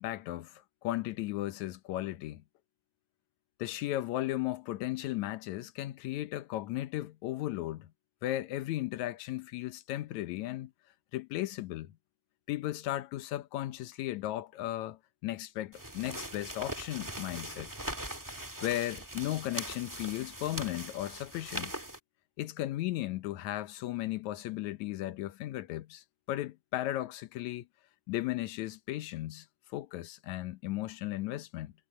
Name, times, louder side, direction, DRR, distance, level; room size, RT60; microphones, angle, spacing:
voice 1, 0.0-2.4 3.6-7.9 8.2-10.7 11.1-12.0 12.5-17.7 18.6-21.7 22.4-27.7 28.1-31.7, left 15 dB, 75° left, 2.2 m, -36 dB
sound 1, 15.7-22.0, right 1 dB, 10° right, 1.3 m, -41 dB
omnidirectional pair, 3.5 m